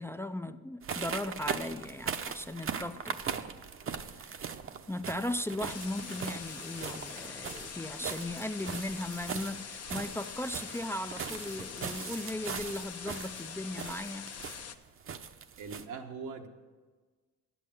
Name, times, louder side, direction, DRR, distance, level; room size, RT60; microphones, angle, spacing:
voice 1, 0.0-3.5 4.2-4.5 4.9-14.3, left 1 dB, 10° left, 10 dB, 0.4 m, -37 dB
sound 1, 0.8-15.8, right 7 dB, 45° right, 0.7 m, -40 dB
sound 2, 5.7-14.8, left 7 dB, 55° left, 0.9 m, -44 dB
voice 2, 15.6-16.5, right 5 dB, 85° right, 4 dB, 1.3 m, -41 dB
11.0 x 8.5 x 7.1 m, 1.4 s
cardioid pair, 90°, 30 cm